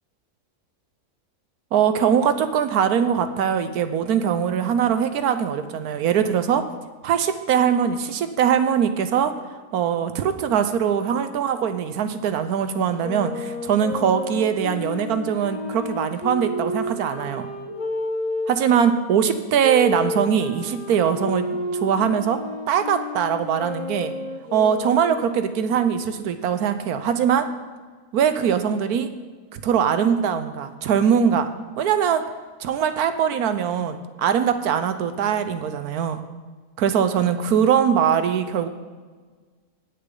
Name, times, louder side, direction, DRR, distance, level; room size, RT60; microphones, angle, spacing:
voice 1, 1.7-6.6 7.0-9.3 9.7-17.5 18.5-22.4 22.7-24.1 24.5-27.5 28.1-29.1 29.5-31.5 31.8-32.2 32.6-36.2 36.8-38.7, right 8 dB, 80° right, 10 dB, 1.3 m, -22 dB
Wind instrument woodwind instrument, 12.9-18.8 19.6-25.4, left 2 dB, 30° left, 1.2 m, -31 dB
19.0 x 6.7 x 3.9 m, 1.5 s
omnidirectional pair, 1.6 m